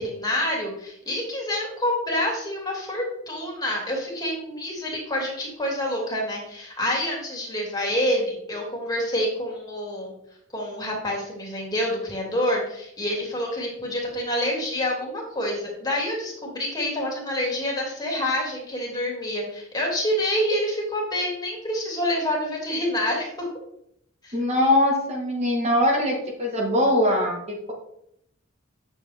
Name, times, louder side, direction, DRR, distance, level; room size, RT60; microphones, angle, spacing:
voice 1, 0.0-10.1 10.5-23.5 24.2-24.4, left 1 dB, 20° left, -2 dB, 2.6 m, -27 dB
voice 2, 24.3-27.7, left 1 dB, 35° right, -1 dB, 1.6 m, -22 dB
9.2 x 7.1 x 3.5 m, 0.75 s
head